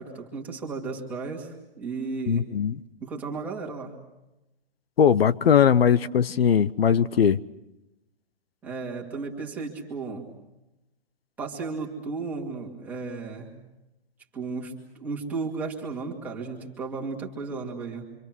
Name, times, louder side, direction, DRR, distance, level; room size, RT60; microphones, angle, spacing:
voice 1, 0.0-2.5 3.0-3.9 8.6-10.3 11.4-13.5 14.3-18.0, right 4 dB, 5° right, 2.3 m, -34 dB
voice 2, 2.3-2.8 5.0-7.4, left 8 dB, 75° left, 0.9 m, -20 dB
26.5 x 26.0 x 6.2 m
hypercardioid pair, 175°, 30 cm